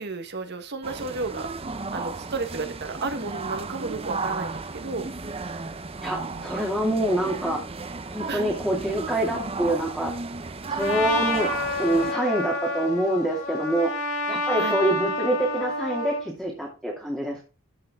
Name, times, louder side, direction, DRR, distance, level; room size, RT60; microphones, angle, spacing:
voice 1, 0.0-1.5 1.9-5.1 6.3-6.5 8.3-8.4 10.8-11.0 14.6-14.8, right 3 dB, 55° right, 7 dB, 1.4 m, -33 dB
sound 1, 0.8-12.1, right 4 dB, 30° right, 0.7 m, -34 dB
voice 2, 6.0-7.6 8.1-10.1 10.7-11.5 11.8-13.9 14.3-17.4, right 1 dB, 5° right, -4 dB, 2.7 m, -25 dB
Trumpet, 10.8-16.3, left 2 dB, 80° left, 3.4 m, -29 dB
13.5 x 5.7 x 3.7 m, 0.32 s
head